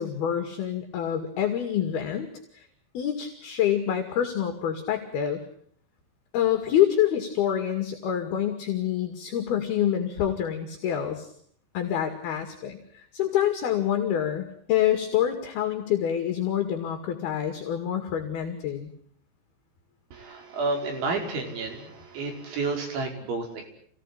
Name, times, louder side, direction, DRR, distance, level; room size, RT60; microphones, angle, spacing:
voice 1, 0.0-2.3 2.5-2.7 2.9-5.4 6.3-11.3 11.7-18.9, left 10 dB, 60° left, 6 dB, 4.0 m, -26 dB
voice 2, 20.1-23.7, right 3 dB, 90° right, 3 dB, 7.4 m, -31 dB
27.5 x 19.0 x 10.0 m, 0.65 s
omnidirectional pair, 5.2 m